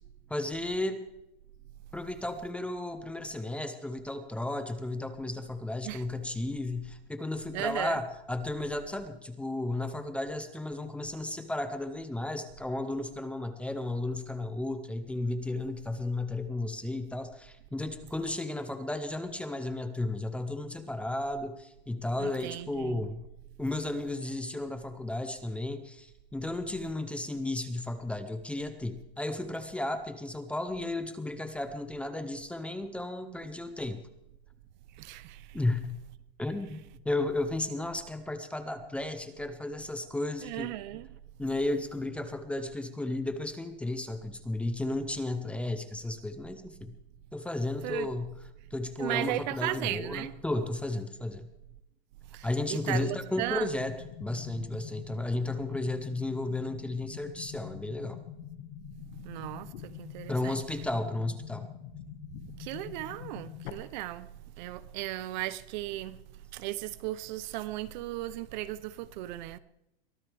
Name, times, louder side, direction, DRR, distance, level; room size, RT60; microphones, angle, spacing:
voice 1, 0.3-1.1 1.9-23.2 23.6-34.0 35.5-36.0 36.4-40.7 41.4-46.9 47.3-48.3 48.7-51.5 52.4-58.2 60.3-61.7, left 2 dB, 5° left, 0.7 m, -34 dB
voice 2, 7.5-8.0 22.2-23.1 34.9-35.6 40.4-41.1 47.8-48.1 49.0-50.3 52.3-53.8 59.2-60.6 62.6-64.3 64.6-66.2 66.5-69.6, right 15 dB, 50° right, 0.7 m, -36 dB
sound 1, 53.7-63.7, left 11 dB, 75° left, 1.8 m, -45 dB
23.0 x 15.5 x 3.5 m
supercardioid pair, 155°, 30 cm